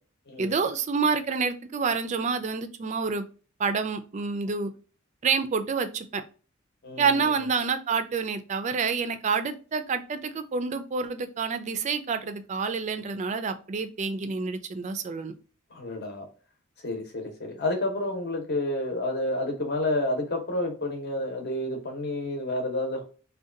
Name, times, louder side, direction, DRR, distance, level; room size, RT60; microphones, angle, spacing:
voice 1, 0.4-3.2 3.6-4.7 5.2-6.2 7.0-15.3, right 5 dB, 35° right, 10 dB, 0.3 m, -28 dB
voice 2, 6.8-7.2 15.7-16.2 16.8-23.0, left 1 dB, 50° left, 3 dB, 0.8 m, -30 dB
2.7 x 2.2 x 2.4 m, 0.37 s
head